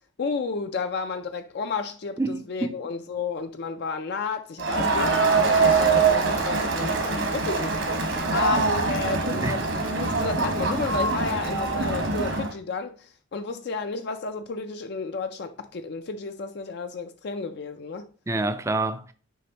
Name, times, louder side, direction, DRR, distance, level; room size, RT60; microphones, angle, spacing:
voice 1, 0.2-8.0 8.3-9.6 10.0-13.0 13.3-18.1, left 4 dB, 55° left, 0.4 m, -32 dB
voice 2, 2.2-2.8 9.4-9.6 18.3-19.1, right 2 dB, 15° right, 0.4 m, -27 dB
Crowd, 4.6-12.5, right 4 dB, 70° right, 1.3 m, -24 dB
6.4 x 5.2 x 2.9 m
head